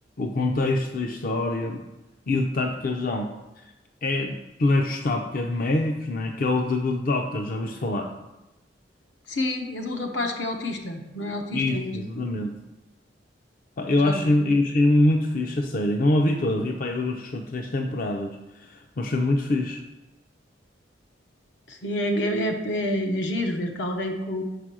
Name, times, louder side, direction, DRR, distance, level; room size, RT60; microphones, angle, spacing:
voice 1, 0.2-1.8 2.3-3.3 4.0-8.1 11.5-12.5 13.8-19.8, left 2 dB, 50° left, 3 dB, 0.6 m, -24 dB
voice 2, 9.3-12.3 14.0-14.3 21.7-24.4, left 1 dB, 85° left, 3 dB, 1.1 m, -28 dB
5.9 x 5.0 x 6.2 m, 0.96 s
head